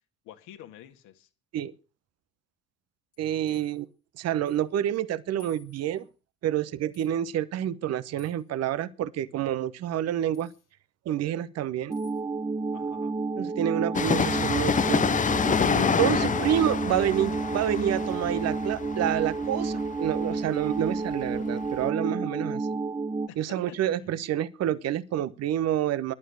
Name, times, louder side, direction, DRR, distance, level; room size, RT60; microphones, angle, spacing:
voice 1, 0.2-1.3 3.4-3.7 12.7-13.2 23.3-24.0, left 12 dB, 60° left, 1.9 m, -49 dB
sound 1, 3.1-3.8 4.5-4.7 4.9-5.0 5.4-6.1 6.9-7.1 8.2-8.5 10.3-10.7 11.9-12.2, left 8 dB, 90° left, 3.1 m, -58 dB
voice 2, 3.2-3.8 4.2-6.1 6.4-10.5 11.1-12.0 13.4-15.0 15.4-22.7 23.4-26.1, right 11 dB, 45° right, 1.1 m, -28 dB
sound 2, 11.9-23.3, right 3 dB, 10° right, 0.8 m, -31 dB
Train, 13.9-21.4 21.6-21.7, left 6 dB, 20° left, 0.7 m, -27 dB
14.0 x 11.5 x 6.4 m
figure-of-eight pair, 55°, 35 cm